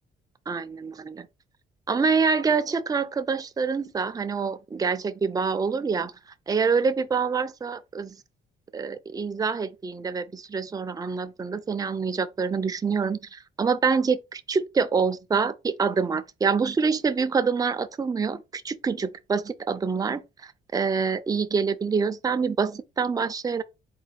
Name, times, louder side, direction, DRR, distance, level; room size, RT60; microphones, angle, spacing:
voice 1, 0.5-1.3 1.9-6.1 6.5-8.2 8.7-23.6, right 5 dB, 20° right, 0.4 m, -26 dB
4.1 x 2.2 x 4.5 m
cardioid pair, 90°, 20 cm